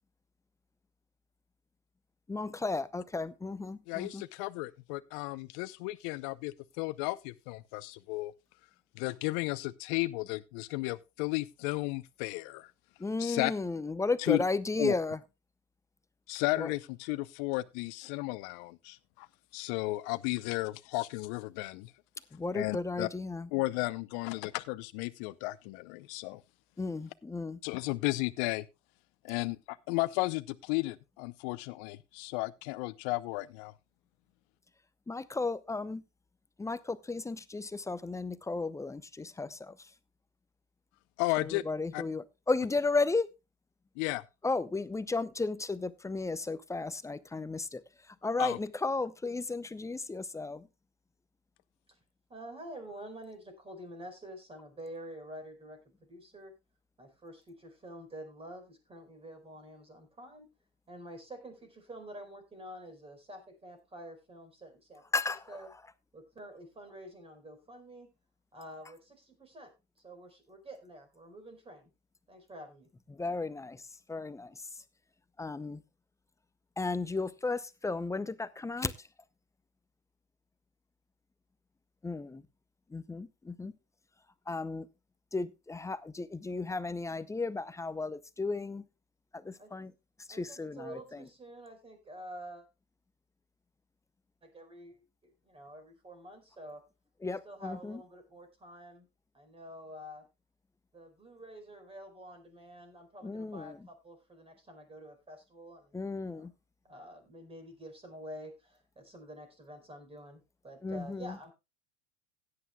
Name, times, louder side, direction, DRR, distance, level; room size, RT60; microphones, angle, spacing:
voice 1, 2.3-4.2 13.0-15.2 16.6-16.7 22.3-23.5 26.8-27.6 35.1-36.0 36.6-39.9 41.4-43.3 44.4-50.7 65.1-65.7 73.1-74.8 75.4-75.8 76.8-79.1 82.0-82.4 82.9-83.7 84.5-84.9 85.3-88.9 89.3-89.9 90.2-91.3 97.2-98.0 103.2-103.8 105.9-106.5 110.8-111.4, left 3 dB, 10° left, 0.7 m, -34 dB
voice 2, 3.9-8.3 9.0-12.7 13.2-13.5 14.3-14.4 14.8-14.9 16.3-19.3 19.5-21.9 22.5-23.1 23.5-26.4 27.6-28.6 29.2-33.7 41.2-41.6 41.9-42.0 44.0-44.2 48.4-48.6, left 21 dB, 55° left, 0.6 m, -34 dB
voice 3, 52.3-55.8 56.1-56.5 57.0-60.5 60.9-65.0 65.5-65.7 66.1-68.1 68.5-71.9 72.3-72.9 89.6-89.7 90.3-92.7 94.4-96.8 97.4-99.1 99.3-100.2 100.9-105.9 106.3-106.5 106.8-111.5, right 1 dB, 15° right, 4.7 m, -48 dB
16.5 x 9.6 x 2.3 m
hypercardioid pair, 90°, 33 cm